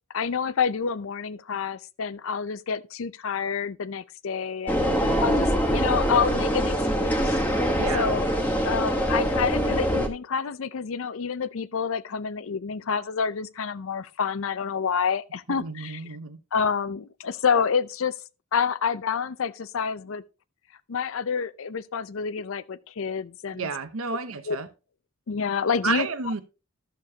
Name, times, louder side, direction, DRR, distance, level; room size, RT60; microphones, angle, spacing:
voice 1, 0.1-7.4 7.9-8.3 8.7-16.2 16.5-18.1 18.5-20.2 20.9-23.7 24.5-24.6 25.3-26.1, left 6 dB, 65° left, 0.5 m, -28 dB
sound 1, 4.7-10.1, equal, 10° left, 1.2 m, -24 dB
voice 2, 4.8-5.2 7.7-8.1 15.5-16.4 23.6-24.7 25.8-26.4, right 5 dB, 75° right, 0.9 m, -31 dB
12.5 x 6.7 x 2.8 m
head